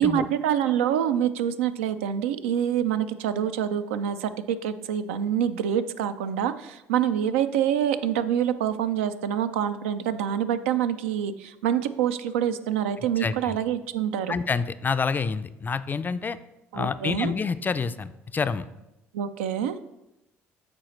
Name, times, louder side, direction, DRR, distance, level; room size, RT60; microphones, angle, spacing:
voice 1, 0.0-14.3 16.7-17.3 19.1-19.8, right 9 dB, 85° right, 11 dB, 0.3 m, -26 dB
voice 2, 13.2-13.6 14.3-16.4 16.7-18.7, left 5 dB, 30° left, 13 dB, 0.3 m, -28 dB
7.4 x 4.2 x 3.1 m, 0.92 s
hypercardioid pair, 60°, 7 cm